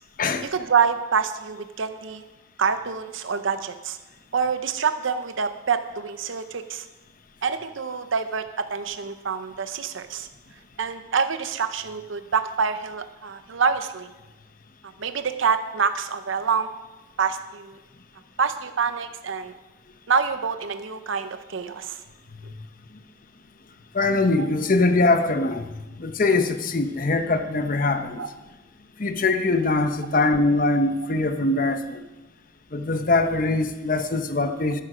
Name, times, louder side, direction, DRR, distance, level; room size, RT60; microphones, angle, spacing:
voice 1, 0.5-2.2 2.6-4.0 4.3-6.9 7.4-10.3 10.8-14.1 15.0-16.7 17.2-17.8 18.4-19.5 20.1-22.0 24.4-24.5 28.2-28.3, right 6 dB, 75° right, 9 dB, 0.7 m, -26 dB
voice 2, 23.9-25.7 26.0-28.2 29.0-32.0 32.7-34.8, left 2 dB, 45° left, 8 dB, 0.8 m, -22 dB
12.0 x 11.0 x 5.0 m, 1.1 s
head